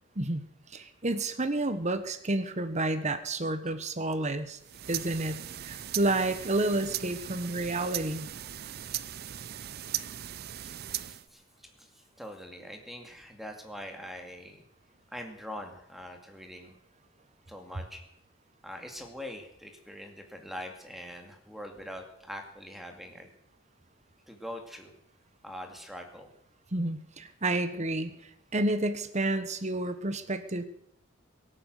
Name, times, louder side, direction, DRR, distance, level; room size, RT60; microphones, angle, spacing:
voice 1, 0.7-4.6 4.9-8.3 26.7-30.6, right 2 dB, 35° right, 10 dB, 1.3 m, -30 dB
sound 1, 4.6-11.3, right 12 dB, 50° right, 0.5 m, -38 dB
voice 2, 9.6-10.0 10.6-11.4 11.8-14.6 15.1-16.7 17.5-18.0 18.6-23.3 24.3-24.9 25.4-26.3, equal, ahead, 3 dB, 2.3 m, -43 dB
23.0 x 8.9 x 6.6 m, 0.75 s
head